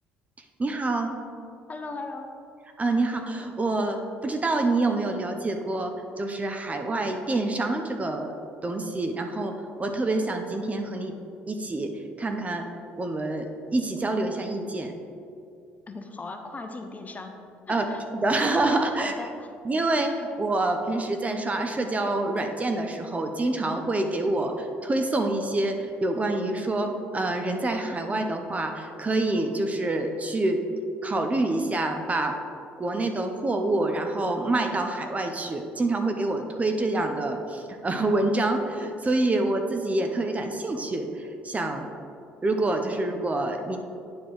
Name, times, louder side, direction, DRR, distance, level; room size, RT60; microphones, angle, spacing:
voice 1, 0.6-1.1 2.8-8.3 8.6-9.5 9.8-11.1 11.5-11.9 12.2-12.6 13.0-13.5 13.7-14.9 17.7-17.8 18.1-19.1 19.6-30.6 31.0-32.3 32.8-41.9 42.4-43.8, right 2 dB, 25° right, 5 dB, 0.8 m, -26 dB
voice 2, 1.7-2.3 15.9-17.3 17.7-18.0 19.0-19.5, left 3 dB, 30° left, 5 dB, 0.8 m, -38 dB
9.4 x 4.7 x 3.9 m, 2.5 s
hypercardioid pair, 70°, 5 cm